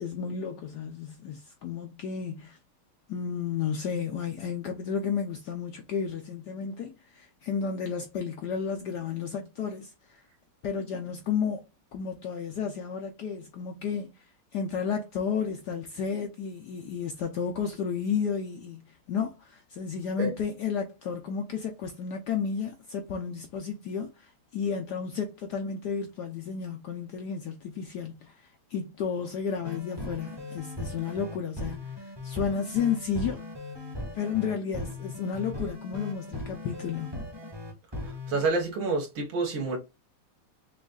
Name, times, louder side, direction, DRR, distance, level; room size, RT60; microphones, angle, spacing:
voice 1, 0.0-2.6 3.1-10.2 10.6-11.6 11.9-14.1 14.5-28.4 28.7-33.4 34.1-37.2, left 6 dB, 70° left, 1.0 m, -32 dB
sound 1, 29.6-38.5, left 2 dB, 15° right, 0.9 m, -38 dB
voice 2, 38.3-39.8, right 3 dB, 70° right, 2.2 m, -28 dB
6.3 x 2.5 x 2.3 m
omnidirectional pair, 2.4 m